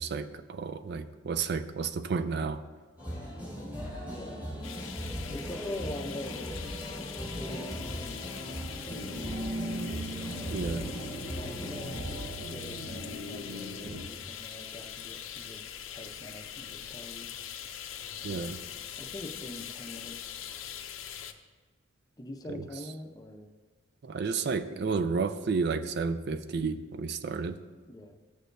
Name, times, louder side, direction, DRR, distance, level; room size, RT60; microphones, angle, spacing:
voice 1, 0.0-2.6 10.5-10.9 18.2-18.6 24.0-27.6, right 4 dB, 55° right, 10 dB, 0.4 m, -31 dB
sound 1, 3.0-12.3, equal, 10° right, 1.9 m, -38 dB
voice 2, 4.0-4.5 5.3-6.6 6.9-10.6 11.4-17.3 18.2-18.6 19.0-20.5 22.2-23.5 27.9-28.2, left 1 dB, 20° left, 2 dB, 0.6 m, -44 dB
sound 2, 4.6-21.3, left 9 dB, 80° left, 0.5 m, -43 dB
sound 3, 8.9-14.0, right 1 dB, 70° right, 1.0 m, -39 dB
13.5 x 6.5 x 2.6 m, 1.4 s
head